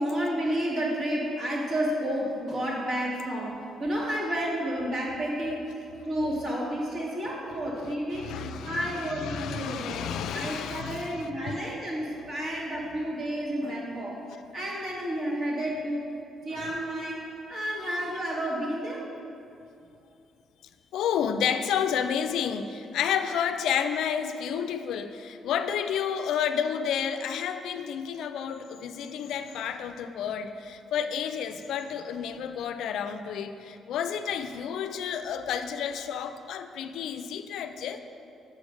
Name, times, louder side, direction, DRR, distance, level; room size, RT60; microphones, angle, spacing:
voice 1, 0.0-5.7 6.0-8.3 8.7-10.0 10.3-14.2 14.5-16.0 16.5-19.0, equal, 50° right, -4 dB, 1.8 m, -31 dB
voice 2, 7.8-11.7 17.5-17.8 20.9-38.0, left 8 dB, 80° left, 9 dB, 0.3 m, -31 dB
6.6 x 4.9 x 5.1 m, 2.6 s
cardioid pair, 90°, 0 cm